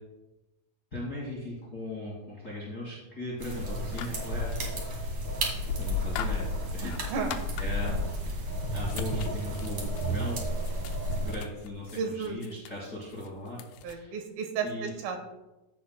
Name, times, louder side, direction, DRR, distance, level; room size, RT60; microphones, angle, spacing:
voice 1, 0.9-6.9 7.6-8.0 8.7-10.4 11.1-14.1 14.6-14.9, left 1 dB, 30° left, -6 dB, 2.4 m, -39 dB
sound 1, 3.4-11.3, equal, 45° right, 2.1 m, -32 dB
sound 2, 3.9-4.6 5.4-8.1 8.8-14.0, left 7 dB, 85° left, 2.5 m, -42 dB
voice 2, 6.8-7.3 11.9-12.4 13.8-15.3, right 5 dB, 85° right, 4 dB, 3.1 m, -33 dB
15.0 x 7.2 x 2.2 m, 1.0 s
omnidirectional pair, 4.1 m